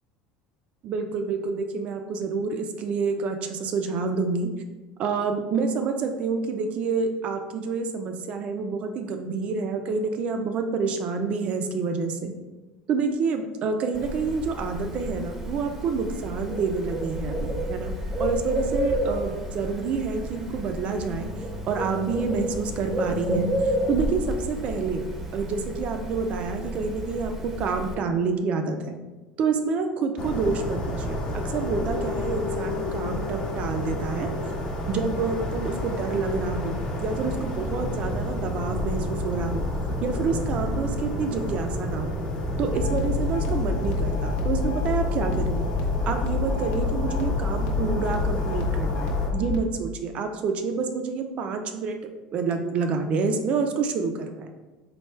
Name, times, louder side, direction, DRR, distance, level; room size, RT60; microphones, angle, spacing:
voice 1, 0.8-4.5 5.0-12.3 12.9-17.9 18.2-21.3 21.7-25.0 25.3-29.0 29.4-34.3 34.9-39.7 40.0-42.1 42.6-45.7 46.1-52.0 52.3-54.5, right 4 dB, 50° right, 6 dB, 0.5 m, -28 dB
Bird, 13.9-27.9, equal, 15° right, 0.7 m, -31 dB
sound 1, 30.2-49.3, left 1 dB, 30° left, 0.8 m, -30 dB
sound 2, 42.7-49.6, left 3 dB, 60° left, 0.7 m, -27 dB
3.3 x 2.3 x 4.3 m, 1.2 s
supercardioid pair, 115°, 3 cm